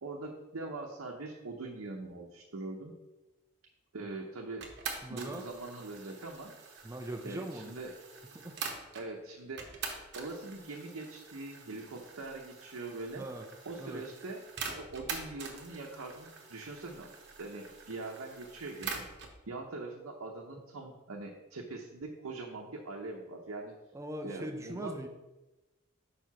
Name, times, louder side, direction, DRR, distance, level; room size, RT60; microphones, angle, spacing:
voice 1, 0.0-2.9 3.9-6.5 7.2-7.9 8.9-9.9 10.1-13.3 13.6-17.1 17.4-19.0 19.5-23.7 24.2-25.0, right 2 dB, 85° right, 0 dB, 0.8 m, -42 dB
sound 1, 4.6-9.1 9.6-19.4, right 5 dB, 55° right, 1.0 m, -45 dB
voice 2, 5.0-5.4 6.8-7.7 8.4-8.6 13.2-13.5 13.8-14.1 23.9-25.1, right 1 dB, 15° right, 5 dB, 0.5 m, -40 dB
5.0 x 4.7 x 5.7 m, 1.1 s
head